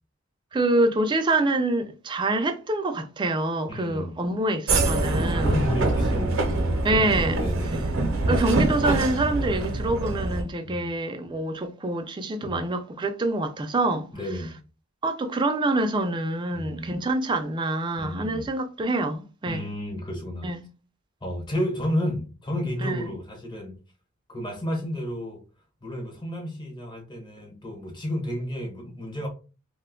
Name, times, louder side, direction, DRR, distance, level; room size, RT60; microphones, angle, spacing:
voice 1, 0.5-5.5 6.8-7.4 8.3-14.1 15.0-19.7 20.4-20.6 22.8-23.1, right 2 dB, 20° right, 0.4 m, -26 dB
voice 2, 3.7-4.2 5.2-7.8 10.6-10.9 12.4-12.6 14.1-14.6 16.5-17.0 18.0-18.5 19.5-20.5 21.2-23.8 24.3-25.4 25.8-29.3, equal, 20° left, 0.8 m, -32 dB
sound 1, 4.7-10.4, right 2 dB, 65° right, 0.6 m, -24 dB
2.5 x 2.2 x 3.6 m
head